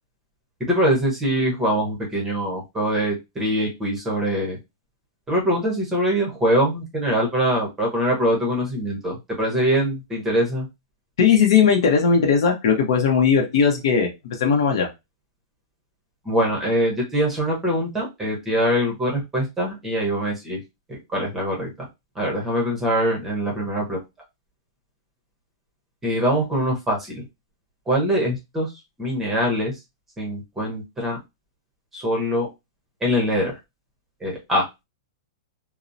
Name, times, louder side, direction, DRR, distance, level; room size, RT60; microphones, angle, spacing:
voice 1, 0.6-4.6 5.3-10.7 16.2-20.6 20.9-21.7 22.1-24.0 26.0-27.2 27.9-28.7 29.0-29.8 30.2-31.2 31.9-32.5 33.0-33.6 34.2-34.7, equal, 10° right, -1 dB, 0.7 m, -23 dB
voice 2, 11.2-14.9, left 6 dB, 65° left, 2 dB, 0.7 m, -18 dB
2.8 x 2.0 x 2.5 m, 0.22 s
supercardioid pair, 160°, 3 cm